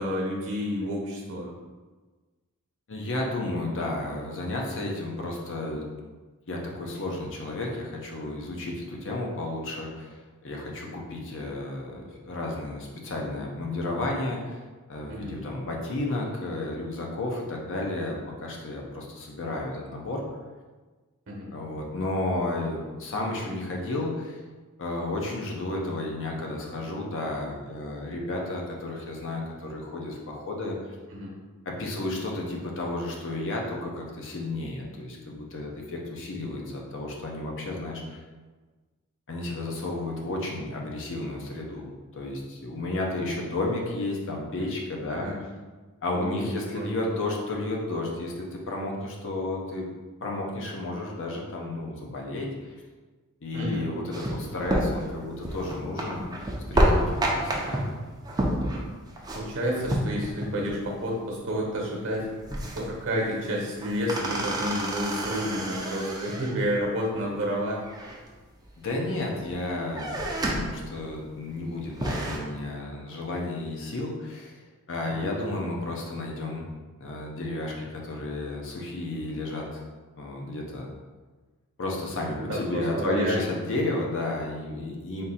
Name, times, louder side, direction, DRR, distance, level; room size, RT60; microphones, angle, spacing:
voice 1, 0.0-1.5 15.1-15.3 21.3-21.5 31.1-31.3 45.1-45.4 46.1-46.4 46.8-46.9 53.5-53.9 59.3-62.3 62.8-67.8 75.2-75.3 82.4-83.4, equal, 55° right, -2 dB, 0.9 m, -30 dB
voice 2, 2.9-5.9 6.5-14.6 14.9-20.2 21.5-24.4 24.8-30.8 31.7-38.2 39.3-41.9 42.1-45.3 46.0-49.9 50.2-52.8 53.4-56.2 56.7-57.8 68.8-74.6 74.9-76.6 77.0-79.8 80.2-80.9 81.8-85.2, left 2 dB, 60° left, -1 dB, 0.8 m, -32 dB
sound 1, 54.1-60.8 61.0-61.1 61.5-61.8 62.1-63.1 63.5-66.7 67.8-68.7 69.1-69.6 69.9-70.8 71.2-71.3 71.7-72.4, right 1 dB, 15° right, 0.5 m, -29 dB
3.7 x 2.7 x 4.1 m, 1.3 s
head